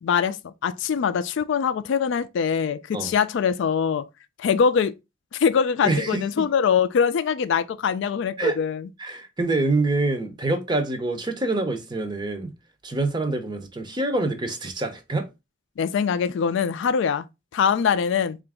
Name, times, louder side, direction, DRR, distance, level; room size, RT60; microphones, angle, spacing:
voice 1, 0.0-4.1 4.4-4.9 5.3-8.8 15.8-17.3 17.5-18.4, left 7 dB, 65° left, 0.3 m, -23 dB
voice 2, 5.8-6.2 8.4-8.6 9.0-12.5 12.8-15.3, right 2 dB, 20° right, 0.6 m, -25 dB
3.8 x 2.5 x 3.5 m
head